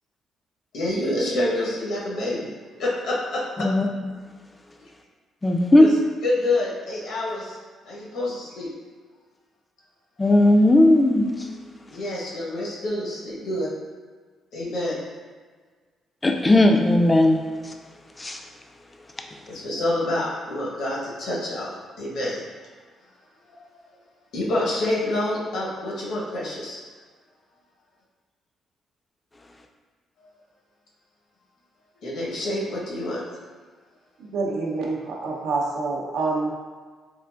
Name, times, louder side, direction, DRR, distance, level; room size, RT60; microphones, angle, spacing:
voice 1, 0.7-2.5 2.8-3.7 5.8-5.9 6.2-7.6 7.9-8.7 11.9-13.7 14.5-14.9 19.5-21.7 22.0-22.4 24.3-26.8 32.0-33.2, left 1 dB, 75° left, -4 dB, 0.9 m, -27 dB
voice 2, 5.4-5.9 10.2-11.3 16.2-17.4 18.2-18.4, left 1 dB, 20° left, 4 dB, 0.3 m, -16 dB
voice 3, 34.2-36.5, right 3 dB, 80° right, -1 dB, 0.5 m, -27 dB
3.7 x 2.4 x 2.3 m, 1.5 s
cardioid pair, 90°, 0 cm